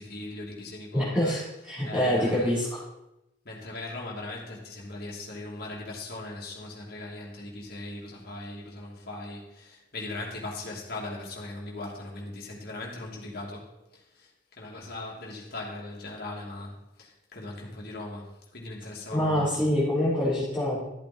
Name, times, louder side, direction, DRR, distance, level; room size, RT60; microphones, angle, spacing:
voice 1, 0.0-1.4 1.8-2.5 3.4-19.7, left 2 dB, 50° left, 2.9 m, -39 dB
voice 2, 0.9-2.8 19.1-20.8, left 1 dB, 5° right, 4.1 m, -26 dB
13.5 x 8.6 x 4.4 m
head